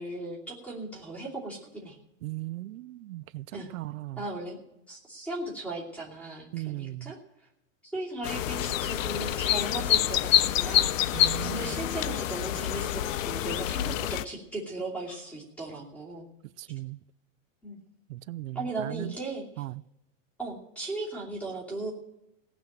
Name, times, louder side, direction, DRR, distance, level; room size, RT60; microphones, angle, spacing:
voice 1, 0.0-2.0 3.5-3.7 4.2-4.6 4.9-7.2 7.8-16.3 17.6-17.8 18.5-19.5 20.4-21.9, right 2 dB, 5° left, 2.8 m, -37 dB
voice 2, 2.2-4.2 6.5-7.1 11.1-11.8 16.4-17.0 18.1-19.2 19.6-19.8, right 17 dB, 85° right, 0.6 m, -38 dB
sound 1, 8.2-14.2, left 12 dB, 80° left, 0.7 m, -27 dB
Clock, 11.1-11.3 12.1-12.2 13.1-13.3 13.6-13.7 14.0-14.2 15.1-15.2, left 3 dB, 25° left, 5.2 m, -48 dB
18.0 x 6.1 x 8.7 m
supercardioid pair, 170°, 39 cm